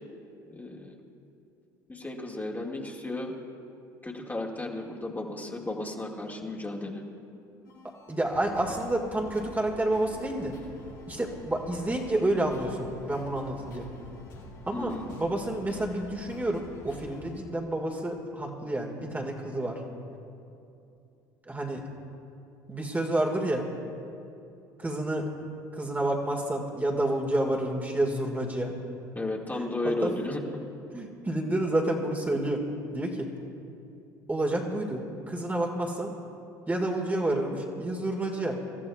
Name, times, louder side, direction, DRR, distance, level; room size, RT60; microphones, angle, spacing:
voice 1, 0.5-1.0 1.9-3.3 4.0-7.0 14.7-15.2 29.2-30.4, left 2 dB, 15° left, -1 dB, 2.1 m, -34 dB
sound 1, 7.6-17.4, left 2 dB, 90° left, 2.8 m, -47 dB
voice 2, 8.1-10.5 11.1-13.9 14.7-19.8 21.5-21.8 22.7-23.6 24.8-25.3 25.7-28.7 30.0-30.1 30.9-32.6 32.9-33.3 34.3-36.1 36.7-38.6, right 1 dB, 15° right, 0 dB, 1.9 m, -29 dB
26.5 x 13.5 x 2.4 m, 2.7 s
hypercardioid pair, 70°, 11 cm